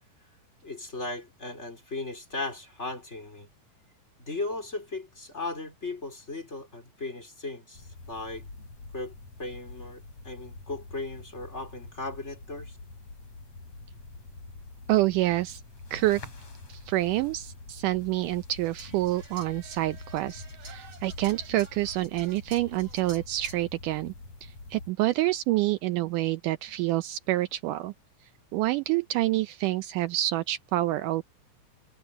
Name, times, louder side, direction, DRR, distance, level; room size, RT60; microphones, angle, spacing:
voice 1, 0.6-3.5 4.2-8.5 8.9-9.1 9.4-12.8, left 2 dB, 20° left, 3.7 m, -37 dB
sound 1, 7.7-24.9, left 3 dB, 50° left, 8.2 m, -46 dB
voice 2, 14.9-15.6 15.9-16.2 16.7-24.1 24.4-27.9 28.5-31.2, right 16 dB, 80° right, 2.1 m, -27 dB
sound 2, 18.6-23.6, right 3 dB, 45° right, 7.6 m, -50 dB
omnidirectional pair, 3.9 m